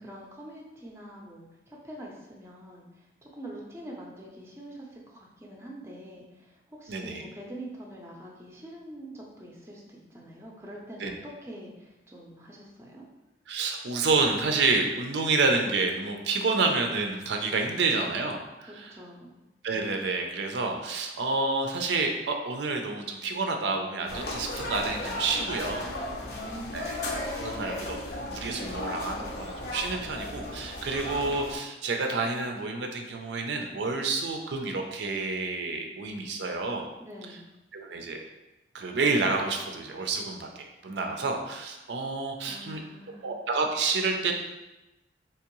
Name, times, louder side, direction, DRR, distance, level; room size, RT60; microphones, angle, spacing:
voice 1, 0.0-13.1 18.6-19.3 26.2-26.9 37.0-37.5 42.4-43.3, right 1 dB, 15° right, -2 dB, 0.5 m, -45 dB
voice 2, 6.9-7.2 11.0-11.1 13.5-19.0 19.6-25.9 26.7-27.0 27.3-28.0 28.3-36.9 37.7-38.2 38.7-42.8 43.2-44.3, right 3 dB, 80° right, 3 dB, 0.4 m, -29 dB
sound 1, 24.1-31.6, left 1 dB, 60° left, 0.6 m, -35 dB
3.5 x 2.9 x 3.0 m, 1.0 s
head